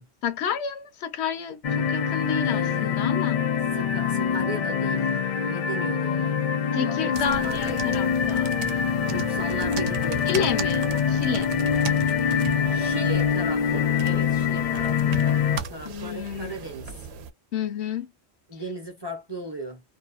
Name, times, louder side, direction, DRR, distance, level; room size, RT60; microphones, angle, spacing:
voice 1, 0.2-3.4 6.7-9.0 10.3-11.5 15.8-16.6 17.5-18.1, left 8 dB, 80° left, 0.9 m, -30 dB
sound 1, 1.6-15.6, left 7 dB, 60° left, 0.4 m, -24 dB
voice 2, 2.4-3.2 3.7-5.1 5.4-8.0 9.1-10.3 10.9-11.0 12.7-16.9 18.5-19.8, right 1 dB, 30° right, 0.6 m, -37 dB
sound 2, 7.1-17.3, right 6 dB, 80° right, 0.8 m, -37 dB
2.7 x 2.2 x 2.3 m
omnidirectional pair, 1.1 m